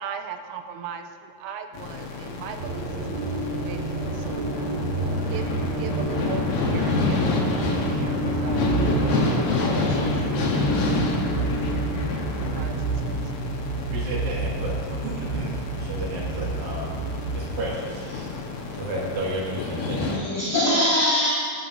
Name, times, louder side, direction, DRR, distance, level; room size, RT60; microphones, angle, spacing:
voice 1, 0.0-4.6 5.0-8.7 9.7-10.2 12.5-13.3, right 7 dB, 85° right, 6 dB, 2.9 m, -38 dB
sound 1, 1.7-20.2, left 3 dB, 70° left, 1.9 m, -28 dB
sound 2, 2.6-17.7, right 3 dB, 70° right, 2.9 m, -29 dB
voice 2, 13.9-17.0 17.3-18.0 18.7-20.2, right 1 dB, 50° right, -5 dB, 3.1 m, -32 dB
voice 3, 15.8-16.6 17.8-18.2 18.5-19.6 20.1-21.3, left 1 dB, 15° left, -10 dB, 1.3 m, -28 dB
15.5 x 11.0 x 2.7 m, 2.1 s
omnidirectional pair, 5.2 m